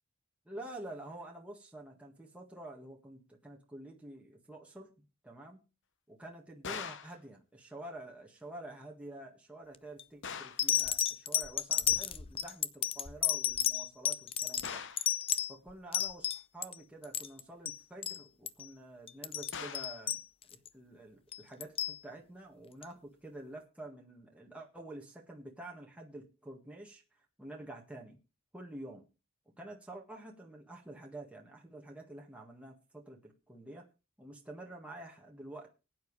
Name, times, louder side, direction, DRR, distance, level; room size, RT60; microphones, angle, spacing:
voice 1, 0.5-5.6 6.1-14.8 15.5-20.2 20.5-27.0 27.4-28.2 28.5-29.0 29.5-33.9 34.2-35.7, right 1 dB, 5° right, -1 dB, 1.7 m, -48 dB
sound 1, 6.6-7.2 10.2-10.7 14.6-15.1 19.5-20.0, left 6 dB, 55° left, 1.0 m, -42 dB
sound 2, 9.7-10.0 10.6-16.7 17.0-17.8 18.0-18.2 18.5-18.7 19.1-20.7 21.3-22.0 22.8-22.9, left 10 dB, 25° left, 0.5 m, -32 dB
20.0 x 9.3 x 3.2 m, 0.31 s
head